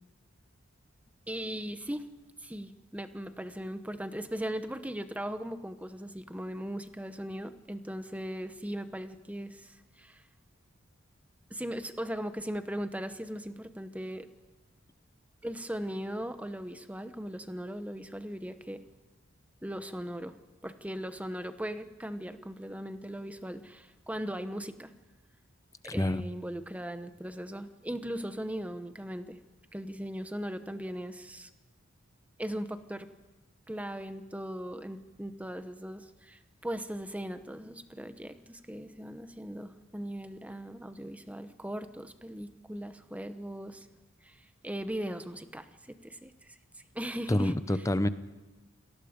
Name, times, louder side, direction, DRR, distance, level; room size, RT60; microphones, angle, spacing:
voice 1, 1.3-2.1 2.4-10.2 11.5-14.3 15.4-18.8 19.6-20.4 20.6-24.9 25.8-29.4 29.7-31.5 32.4-33.1 33.7-43.9 44.2-46.6 46.9-47.9, equal, 5° right, 10 dB, 0.9 m, -38 dB
voice 2, 25.9-26.2 47.3-48.1, left 1 dB, 15° left, 13 dB, 0.7 m, -27 dB
27.5 x 18.5 x 5.1 m, 1.2 s
head